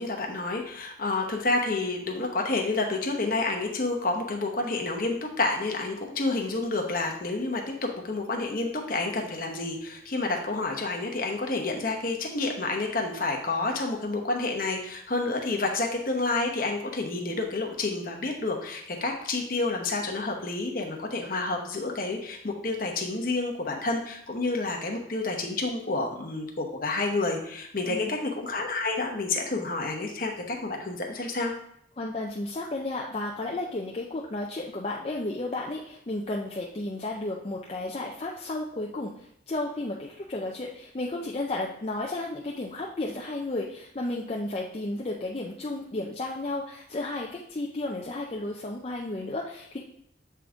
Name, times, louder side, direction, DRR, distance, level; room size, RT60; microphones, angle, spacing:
voice 1, 0.0-31.5, left 3 dB, 45° left, 1 dB, 0.9 m, -29 dB
voice 2, 32.0-49.8, left 2 dB, 30° left, -1 dB, 0.5 m, -33 dB
7.5 x 3.5 x 3.7 m, 0.73 s
head